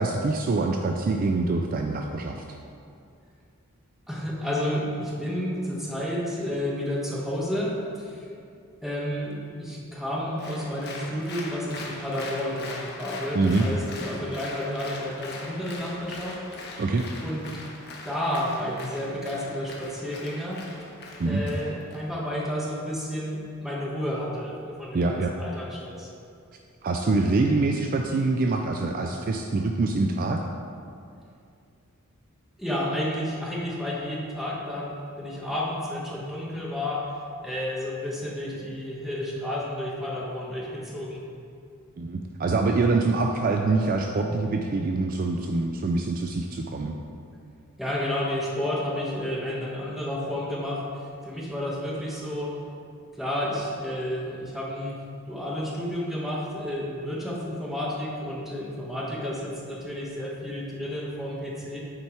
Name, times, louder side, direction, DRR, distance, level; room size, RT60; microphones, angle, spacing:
voice 1, 0.0-2.4 13.3-13.7 16.8-17.0 21.2-21.4 24.9-25.3 26.8-30.4 42.0-46.9, right 3 dB, 40° right, 3 dB, 0.3 m, -25 dB
voice 2, 4.1-8.3 8.8-16.4 17.2-17.4 18.0-20.6 21.2-26.1 32.6-37.1 37.4-41.2 47.8-50.8 51.2-52.5 53.1-55.0 55.3-61.8, left 1 dB, ahead, -5 dB, 1.1 m, -31 dB
Applause, 10.4-22.0, left 2 dB, 50° left, 1.0 m, -41 dB
8.6 x 4.4 x 4.5 m, 2.4 s
head